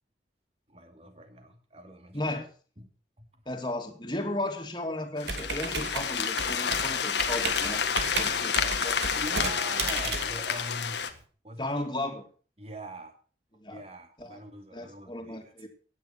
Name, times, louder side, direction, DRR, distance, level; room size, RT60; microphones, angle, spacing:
voice 1, 0.7-2.5 2.8-2.9 3.2-3.3 8.9-11.0 11.4-11.9 12.6-13.1 13.7-15.7, right 1 dB, 35° right, 6 dB, 2.5 m, -43 dB
voice 2, 2.1-2.4 3.5-9.0 11.6-12.2 13.6-13.8 14.2-14.4 14.7-15.7, left 1 dB, 25° left, 4 dB, 2.6 m, -35 dB
sound 1, 5.2-11.1, left 6 dB, 70° left, 1.6 m, -29 dB
Computer keyboard, 5.2-11.2, right 4 dB, 70° right, 2.5 m, -34 dB
16.0 x 10.0 x 5.9 m, 0.40 s
head